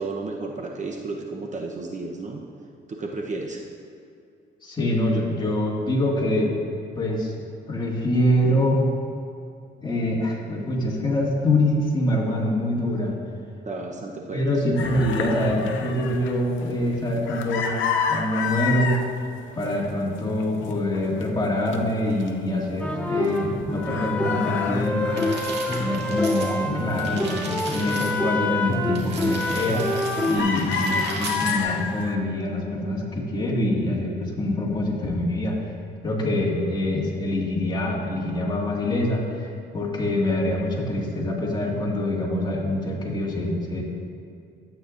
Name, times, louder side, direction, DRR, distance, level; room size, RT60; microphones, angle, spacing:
voice 1, 0.0-2.4 2.9-3.6 13.7-14.4 30.4-30.8, right 3 dB, 35° right, 1 dB, 0.8 m, -32 dB
voice 2, 4.6-6.5 7.0-7.3 7.7-8.8 9.8-13.1 14.3-17.8 18.1-19.0 19.6-25.3 25.8-29.9 30.3-35.6 36.0-39.5 39.7-43.8, left 1 dB, 20° left, -4 dB, 1.9 m, -25 dB
sound 1, 14.8-19.1 19.5-20.1 20.4-21.8 22.2-22.3 22.6-23.6 23.8-26.6 27.0-28.1 28.5-28.7 29.2-29.6 29.9-32.2, left 6 dB, 75° left, 0.6 m, -30 dB
sound 2, 22.8-30.4, left 1 dB, 5° left, 0.7 m, -26 dB
sound 3, 25.1-26.5 26.8-28.1 28.9-31.6, right 3 dB, 60° right, 1.8 m, -36 dB
12.0 x 8.5 x 2.5 m, 2.5 s
cardioid pair, 90°, 20 cm